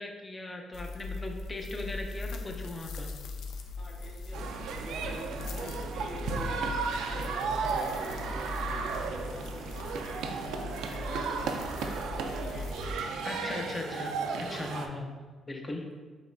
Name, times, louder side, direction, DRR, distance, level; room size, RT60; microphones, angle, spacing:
voice 1, 0.0-3.1 13.2-14.1 14.4-15.2 15.5-15.8, left 2 dB, 25° left, 2 dB, 0.6 m, -38 dB
sound 1, 0.7-12.9, left 3 dB, 80° left, 0.4 m, -40 dB
voice 2, 3.8-10.2 10.8-13.1 15.7-15.9, left 1 dB, 45° left, -4 dB, 1.0 m, -46 dB
sound 2, 4.3-14.9, right 5 dB, 80° right, 0.3 m, -34 dB
4.9 x 3.0 x 2.6 m, 1.4 s
cardioid pair, 90°, 0 cm